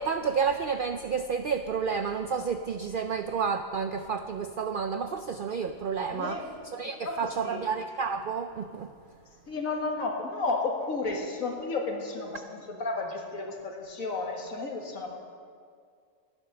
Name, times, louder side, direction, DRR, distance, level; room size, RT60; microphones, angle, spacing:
voice 1, 0.0-6.4 6.7-8.9, right 6 dB, 70° right, 8 dB, 0.5 m, -30 dB
voice 2, 6.1-6.5 7.0-7.6 9.5-15.1, left 3 dB, 75° left, 1 dB, 2.1 m, -32 dB
13.0 x 9.8 x 6.7 m, 2.2 s
omnidirectional pair, 1.4 m